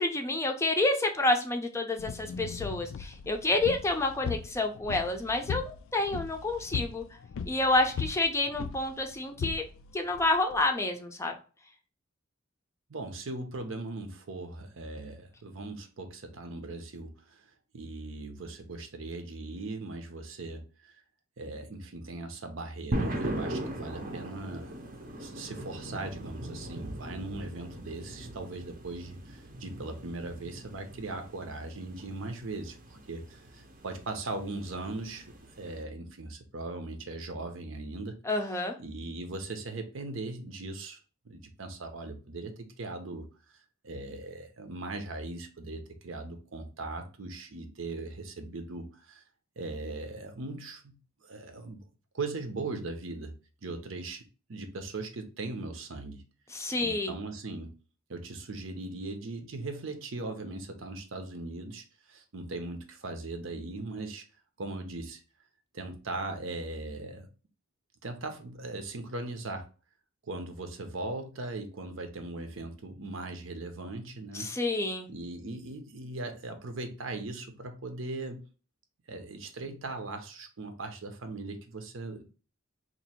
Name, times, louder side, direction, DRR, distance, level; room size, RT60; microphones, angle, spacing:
voice 1, 0.0-7.0 7.5-9.6 9.9-11.3 38.3-38.8 56.5-57.1 74.3-75.1, left 2 dB, 15° left, 4 dB, 0.4 m, -29 dB
sound 1, 2.0-10.7, left 6 dB, 85° left, 0.3 m, -39 dB
voice 2, 12.9-17.5 17.7-21.0 21.4-24.7 25.2-35.3 35.6-38.2 38.8-41.0 41.2-43.6 43.8-49.2 49.6-51.8 52.1-53.4 53.6-54.2 54.5-56.2 56.8-57.8 58.1-64.2 64.6-65.2 65.7-67.3 68.0-69.7 70.3-74.5 75.1-78.4 79.1-82.3, right 2 dB, 80° right, 6 dB, 0.7 m, -39 dB
sound 2, 22.9-35.8, right 1 dB, 45° right, 0.6 m, -39 dB
3.0 x 2.6 x 4.2 m, 0.36 s
head